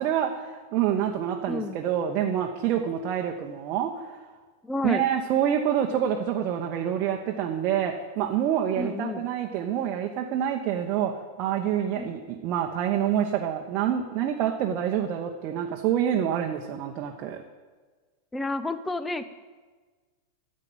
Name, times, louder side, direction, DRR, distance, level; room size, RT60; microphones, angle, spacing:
voice 1, 0.0-4.2 4.8-11.1 11.4-17.4, right 9 dB, 40° right, 2 dB, 1.0 m, -27 dB
voice 2, 1.5-1.8 4.6-5.0 8.7-9.2 12.0-12.1 18.3-19.2, left 2 dB, 10° left, 12 dB, 0.8 m, -30 dB
11.0 x 7.5 x 9.3 m, 1.4 s
figure-of-eight pair, 90°, 0 cm